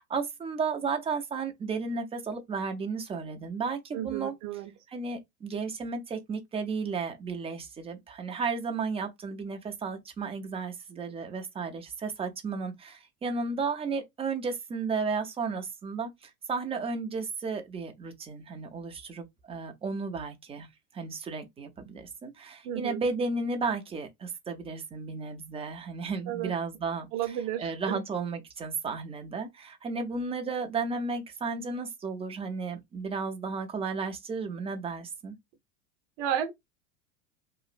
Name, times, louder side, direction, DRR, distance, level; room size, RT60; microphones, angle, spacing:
voice 1, 0.0-4.6 4.9-20.7 20.9-35.3, right 4 dB, 15° right, 0.5 m, -33 dB
voice 2, 3.9-4.7 22.6-23.0 26.3-26.5 27.1-28.0 36.2-36.5, right 10 dB, 55° right, 0.7 m, -32 dB
3.0 x 2.4 x 2.4 m
hypercardioid pair, 105°, 43 cm